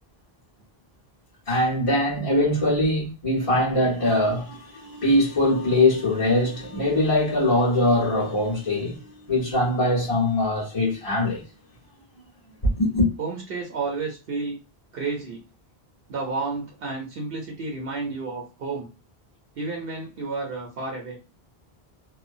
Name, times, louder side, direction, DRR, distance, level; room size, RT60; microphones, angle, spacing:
voice 1, 1.5-11.4 12.6-13.1, left 1 dB, 35° left, 1.3 m, -22 dB
voice 2, 13.2-14.6 14.9-15.4 16.1-18.9 19.6-21.2, right 3 dB, 70° right, 0.9 m, -31 dB
2.8 x 2.2 x 2.5 m
omnidirectional pair, 1.0 m